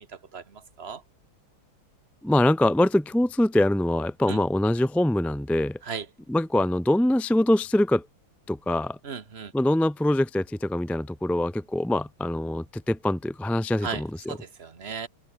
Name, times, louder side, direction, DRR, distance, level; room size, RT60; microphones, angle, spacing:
voice 1, 2.2-5.8 6.3-8.0 8.5-9.0 9.5-14.4, left 1 dB, ahead, 0.4 m, -24 dB
voice 2, 9.0-9.5 13.8-14.0 14.3-15.1, right 6 dB, 35° right, 1.6 m, -34 dB
open air
omnidirectional pair, 2.1 m